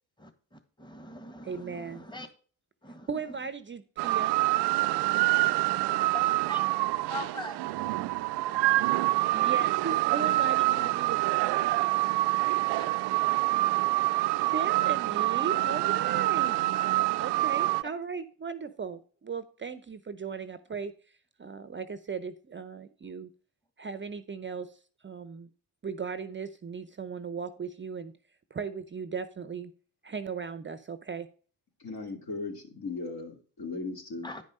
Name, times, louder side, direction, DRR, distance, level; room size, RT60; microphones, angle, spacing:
voice 1, 0.8-2.3 2.8-3.1 6.1-6.6 7.1-7.6 12.8-13.3 34.2-34.4, left 1 dB, 10° left, 1.6 m, -41 dB
voice 2, 1.4-2.1 3.1-4.4 9.3-11.7 14.5-16.6 17.2-20.9 21.4-23.3 23.8-24.8 25.0-25.5 25.8-28.1 28.5-29.7 30.0-31.3, right 5 dB, 25° right, 0.7 m, -37 dB
sound 1, 4.0-17.8, right 18 dB, 65° right, 0.5 m, -26 dB
voice 3, 31.8-34.3, left 3 dB, 55° left, 2.7 m, -37 dB
10.0 x 5.3 x 5.2 m
hypercardioid pair, 50°, 44 cm